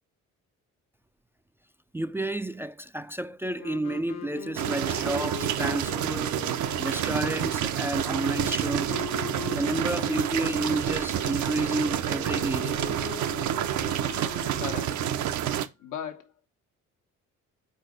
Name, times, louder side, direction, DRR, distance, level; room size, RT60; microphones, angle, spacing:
voice 1, 1.9-6.5 6.8-9.0 9.5-12.8, right 1 dB, 10° right, 0.3 m, -31 dB
Wind instrument woodwind instrument, 3.5-15.3, left 8 dB, 60° left, 0.9 m, -41 dB
sound 1, 4.6-15.7, right 10 dB, 70° right, 0.7 m, -29 dB
voice 2, 14.6-15.1 15.8-16.5, left 9 dB, 85° left, 1.1 m, -38 dB
4.6 x 4.2 x 4.9 m
cardioid pair, 90°, 30 cm